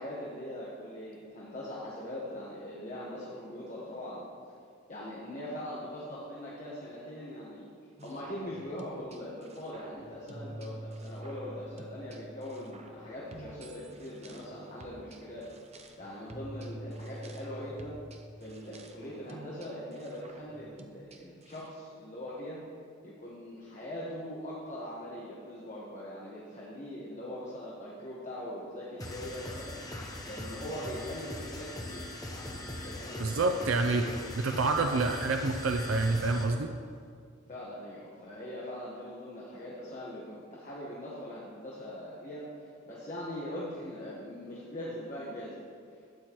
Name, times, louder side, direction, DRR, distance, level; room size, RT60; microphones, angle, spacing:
voice 1, 0.0-4.3 4.9-7.7 8.0-15.4 16.0-18.0 18.4-22.6 23.0-29.8 30.2-34.2 34.8-35.0 37.5-45.6, left 1 dB, 35° left, -6 dB, 1.4 m, -41 dB
sound 1, 8.0-21.7, right 1 dB, 35° right, 0.8 m, -47 dB
sound 2, 29.0-36.6, left 1 dB, 20° left, 0.9 m, -41 dB
voice 2, 33.2-34.0 34.4-36.7, right 3 dB, 75° right, 5 dB, 0.5 m, -27 dB
12.5 x 8.9 x 3.1 m, 2.2 s
head